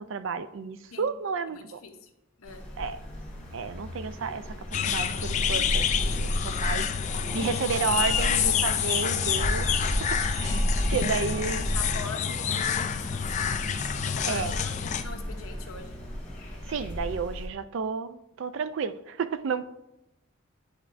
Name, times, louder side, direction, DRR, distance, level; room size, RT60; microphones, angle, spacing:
voice 1, 0.0-1.8 2.8-3.0 3.5-4.6 4.8-6.8 7.3-10.6 10.9-11.7 14.2-14.5 16.7-19.6, right 5 dB, 65° right, 0.4 m, -32 dB
voice 2, 1.5-2.1 2.4-2.7 10.9-11.3 11.6-13.7 14.0-16.0, left 4 dB, 85° left, 0.8 m, -42 dB
sound 1, 2.4-17.5, equal, 5° left, 1.8 m, -33 dB
sound 2, 4.7-15.0, left 8 dB, 35° left, 0.3 m, -28 dB
sound 3, 7.0-14.1, right 1 dB, 30° right, 1.8 m, -45 dB
10.5 x 4.5 x 2.5 m
head